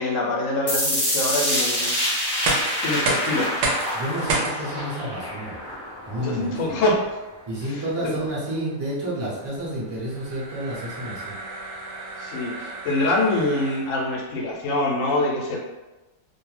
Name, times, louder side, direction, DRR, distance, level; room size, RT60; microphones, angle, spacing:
voice 1, 0.0-2.0 2.8-3.5 6.2-7.0 7.6-8.1 12.2-15.6, left 2 dB, 75° left, -2 dB, 0.9 m, -25 dB
sound 1, 0.7-6.7, left 1 dB, 25° left, 0.5 m, -26 dB
sound 2, 2.3-14.2, right 2 dB, 70° right, 0.9 m, -32 dB
voice 2, 3.9-5.6 6.1-6.6 7.5-11.3, right 1 dB, 25° right, -7 dB, 0.6 m, -30 dB
2.5 x 2.1 x 3.1 m, 1.1 s
omnidirectional pair, 1.4 m